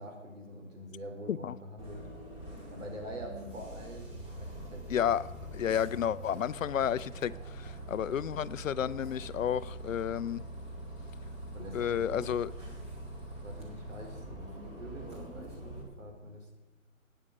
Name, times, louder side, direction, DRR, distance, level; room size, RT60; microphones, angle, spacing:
voice 1, 0.0-2.1 2.7-4.9 11.5-12.3 13.4-16.5, equal, 65° right, 3.9 m, -45 dB
Bus, 1.8-15.8, right 1 dB, 15° right, 2.4 m, -44 dB
voice 2, 4.9-5.2 5.5-10.4 11.7-12.5, left 9 dB, 70° left, 0.5 m, -31 dB
15.5 x 8.9 x 5.2 m
figure-of-eight pair, 140°, 40 cm